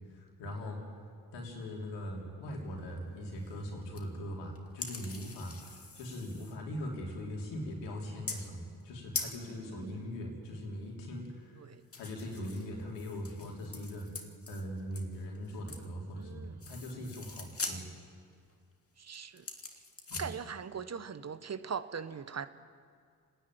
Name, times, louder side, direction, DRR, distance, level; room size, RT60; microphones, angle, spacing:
voice 1, 0.1-0.8 1.3-11.6 12.0-14.0 14.5-17.9 20.1-20.2, equal, 80° left, 0 dB, 3.5 m, -41 dB
sound 1, 3.4-3.6 3.9-4.0 4.6-6.6 7.1-7.4 8.3-8.6 8.8-8.9 9.1-9.4 11.9-15.9 16.2-16.3 16.6-17.8 18.3-18.5 19.1-20.3, left 4 dB, 35° left, 2.5 m, -43 dB
voice 2, 9.5-10.0 11.6-11.8 14.0-14.1 16.2-16.6 19.0-19.5 20.2-22.5, right 6 dB, 40° right, 12 dB, 1.1 m, -41 dB
28.5 x 10.0 x 9.3 m, 2.2 s
hypercardioid pair, 40°, 42 cm